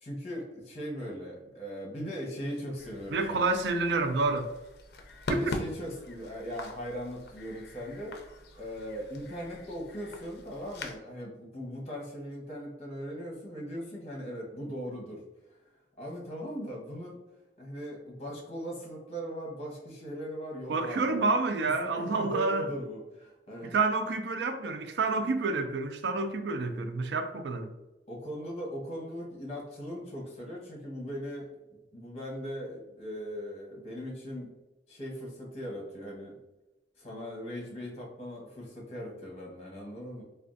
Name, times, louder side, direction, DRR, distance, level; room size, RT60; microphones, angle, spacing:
voice 1, 0.0-3.6 5.3-8.2 8.6-15.2 16.0-17.2 17.6-21.3 21.6-23.8 28.1-31.5 31.9-34.5 34.9-36.4 37.0-40.2, equal, 35° left, 0.9 m, -39 dB
sound 1, 2.8-11.0, left 2 dB, 60° left, 0.4 m, -42 dB
voice 2, 3.1-4.5 5.3-5.6 20.7-22.7 23.6-27.7, right 3 dB, 75° right, 0.4 m, -29 dB
3.4 x 2.3 x 2.5 m
head